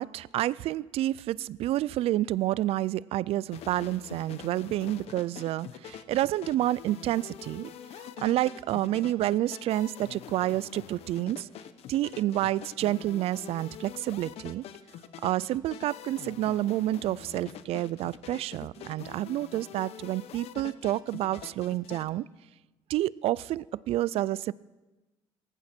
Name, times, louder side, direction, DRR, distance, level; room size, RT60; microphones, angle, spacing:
voice 1, 0.0-7.7 8.0-11.5 11.9-14.6 15.2-22.3 22.9-24.5, right 14 dB, 60° right, 23 dB, 0.4 m, -29 dB
sound 1, 3.5-22.1, left 10 dB, 65° left, 0.9 m, -45 dB
18.0 x 14.5 x 4.4 m, 1.2 s
cardioid pair, 95°, 11 cm